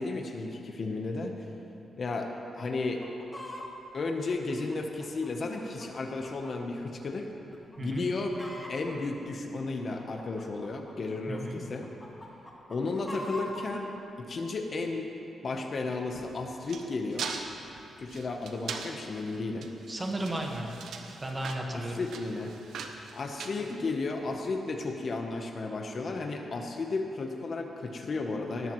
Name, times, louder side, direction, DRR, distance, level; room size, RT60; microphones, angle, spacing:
voice 1, 0.0-1.5 2.0-2.3 2.6-3.0 3.9-7.3 7.8-8.4 8.7-11.9 12.7-13.9 14.2-15.1 15.4-17.3 18.0-19.7 21.7-22.5 23.1-28.7, left 3 dB, 40° left, 3 dB, 0.9 m, -33 dB
Chicken rooster, 2.8-3.7 4.3-6.5 6.9-7.0 7.5-8.9 9.6-11.4 11.8-13.6 14.3-14.4, left 1 dB, 10° left, 1.4 m, -43 dB
voice 2, 11.3-11.6 19.9-20.8 21.2-22.0, right 1 dB, 20° right, 1 dB, 1.4 m, -34 dB
sound 1, 16.1-24.3, right 5 dB, 85° right, 0.9 m, -41 dB
19.0 x 13.5 x 3.1 m, 3.0 s
wide cardioid pair, 150°, 0 cm